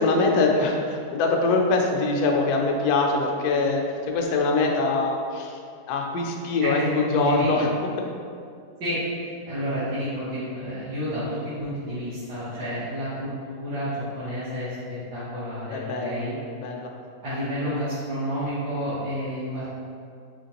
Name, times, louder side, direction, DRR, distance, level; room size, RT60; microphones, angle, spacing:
voice 1, 0.0-5.6 5.9-7.7 8.0-8.1 15.7-16.2 16.6-16.9, left 3 dB, 75° left, 1 dB, 1.1 m, -23 dB
voice 2, 6.6-7.7 8.8-16.3 17.2-19.8, equal, 70° right, -14 dB, 1.7 m, -30 dB
5.0 x 3.1 x 2.9 m, 2.3 s
omnidirectional pair, 1.8 m